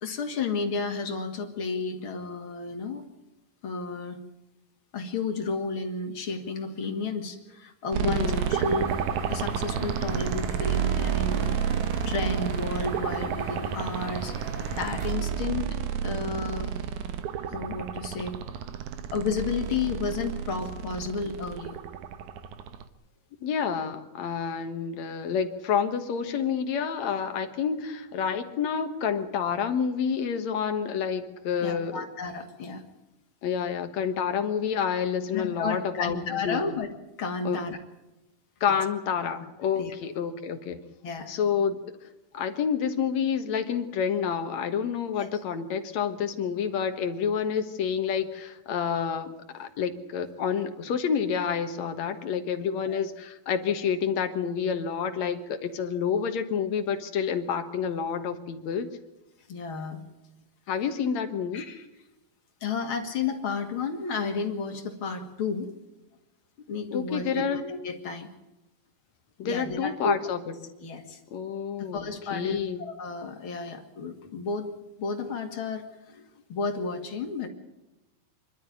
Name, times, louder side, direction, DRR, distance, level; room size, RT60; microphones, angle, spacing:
voice 1, 0.0-3.1 3.6-4.2 4.9-8.9 9.3-11.6 12.1-14.4 14.7-15.7 16.0-16.7 17.5-18.4 19.1-21.8 31.6-32.8 35.3-36.9 37.2-37.8 38.7-38.8 39.8-39.9 41.0-41.3 45.1-45.3 52.9-53.0 59.5-60.0 61.5-61.8 62.6-65.7 66.7-68.3 69.4-70.2 70.8-71.2 71.9-74.7 75.0-77.5, left 4 dB, 40° left, 5 dB, 2.4 m, -32 dB
sound 1, 7.9-22.8, right 8 dB, 65° right, 2.2 m, -30 dB
voice 2, 8.0-8.5 23.4-32.0 33.4-36.7 37.5-37.6 38.6-40.8 41.3-41.8 42.3-58.9 60.7-61.6 66.9-67.6 69.4-70.4 71.3-72.8, left 7 dB, 60° left, 8 dB, 2.2 m, -29 dB
sound 2, 8.1-15.1, right 2 dB, 85° right, 6.0 m, -40 dB
25.5 x 12.5 x 9.6 m, 0.98 s
omnidirectional pair, 4.4 m